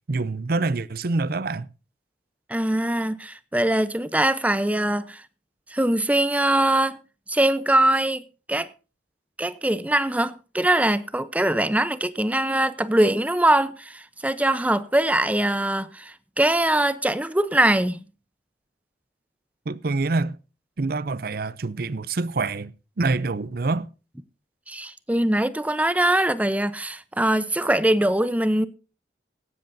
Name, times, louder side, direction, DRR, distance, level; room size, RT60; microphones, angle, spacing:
voice 1, 0.1-1.7 19.7-20.4 20.8-23.9, right 3 dB, 55° right, 0.6 m, -26 dB
voice 2, 2.5-5.2 5.7-7.0 7.3-8.2 8.5-8.7 9.4-18.0 24.7-28.7, right 1 dB, 10° right, 0.8 m, -22 dB
16.5 x 12.5 x 2.7 m
head